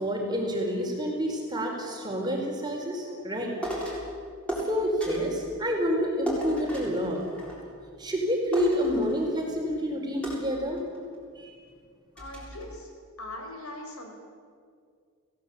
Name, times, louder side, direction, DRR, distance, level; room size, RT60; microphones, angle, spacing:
voice 1, 0.0-3.5 4.6-7.2 8.0-10.8 11.3-11.5, equal, 20° right, 0 dB, 4.6 m, -28 dB
sound 1, 3.6-4.1 4.5-5.4 6.3-7.9 8.1-8.2 8.5-9.5 10.2-11.2 11.7-11.8 12.2-12.6, right 1 dB, 5° left, 7.3 m, -35 dB
voice 2, 12.1-12.9 13.2-14.1, left 1 dB, 85° left, 3 dB, 6.0 m, -40 dB
29.0 x 17.5 x 8.5 m, 2.1 s
head